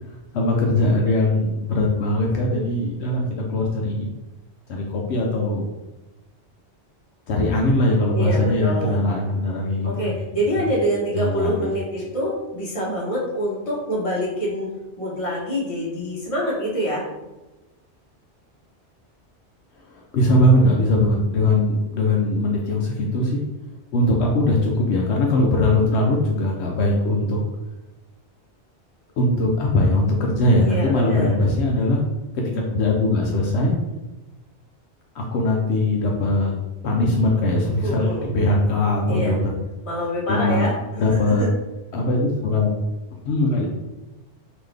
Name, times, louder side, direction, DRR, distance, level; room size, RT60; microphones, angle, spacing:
voice 1, 0.3-4.1 4.7-5.6 7.3-10.1 11.1-11.7 19.9-23.4 23.9-27.4 29.2-32.0 32.3-33.7 35.1-36.5 36.8-39.5 40.3-40.7 40.9-41.4 41.9-42.7 43.2-43.7, left 1 dB, 75° left, -1 dB, 0.9 m, -20 dB
voice 2, 8.1-9.1 9.8-17.0 30.6-31.4 37.8-38.3 39.1-39.4 39.8-40.7 41.1-41.5, equal, 30° left, -5 dB, 1.2 m, -26 dB
3.7 x 2.9 x 3.2 m, 1.0 s
omnidirectional pair, 1.2 m